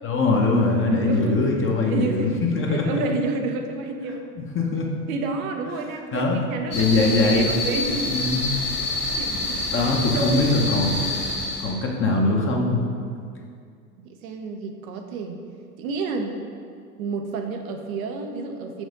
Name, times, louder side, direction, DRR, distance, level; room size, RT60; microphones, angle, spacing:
voice 1, 0.0-3.0 4.4-4.9 6.1-6.4 6.7-7.5 8.1-8.6 9.7-11.0 11.6-12.9, left 3 dB, 25° left, 0 dB, 1.0 m, -22 dB
voice 2, 1.1-1.4 1.8-2.3 2.7-4.2 5.1-8.1 8.8-10.9 14.0-15.4 15.8-16.4 17.0-18.8, right 3 dB, 65° right, 4 dB, 0.9 m, -30 dB
sound 1, 6.7-11.7, left 2 dB, 90° left, 1.4 m, -27 dB
6.3 x 4.2 x 5.1 m, 2.2 s
hypercardioid pair, 75°, 45 cm